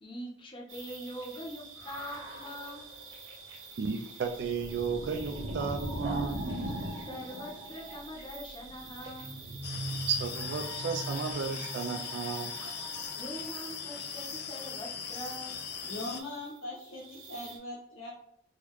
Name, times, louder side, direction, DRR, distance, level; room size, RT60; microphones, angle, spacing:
voice 1, 0.0-2.9 7.1-9.3 13.1-15.6, equal, 25° left, -1 dB, 0.7 m, -43 dB
sound 1, 0.7-17.6, right 1 dB, 85° right, 0.8 m, -41 dB
voice 2, 3.8-6.5 10.1-12.5, right 5 dB, 60° right, 4 dB, 0.3 m, -33 dB
sound 2, 9.6-16.2, left 7 dB, 55° left, 0.3 m, -40 dB
voice 3, 15.8-18.1, left 1 dB, 80° left, -6 dB, 0.8 m, -40 dB
3.8 x 2.1 x 3.0 m, 0.67 s
head